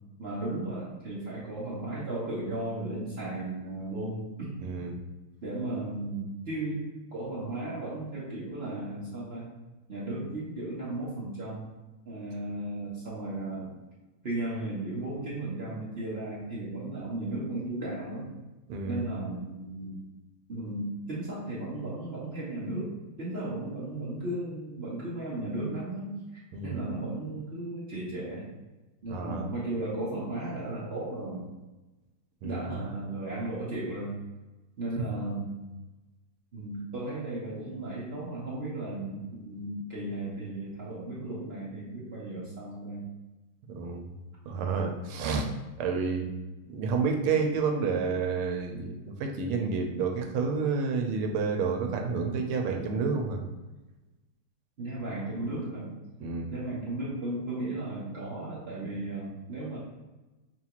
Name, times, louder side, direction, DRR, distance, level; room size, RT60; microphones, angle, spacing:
voice 1, 0.2-4.6 5.4-9.5 9.9-11.7 12.1-13.7 14.2-18.3 18.9-20.0 20.5-22.9 23.2-28.5 29.0-31.5 32.4-34.1 34.8-35.6 36.5-43.1 54.8-55.9 56.5-59.8, right 2 dB, 65° right, -8 dB, 0.6 m, -35 dB
voice 2, 4.6-5.0 18.7-19.0 26.5-26.8 29.1-29.5 32.4-32.7 43.7-44.1 44.4-45.5 45.8-46.3 46.7-53.4 56.2-56.5, right 5 dB, 90° right, 3 dB, 1.5 m, -29 dB
5.7 x 2.4 x 2.9 m, 1.1 s
omnidirectional pair, 2.4 m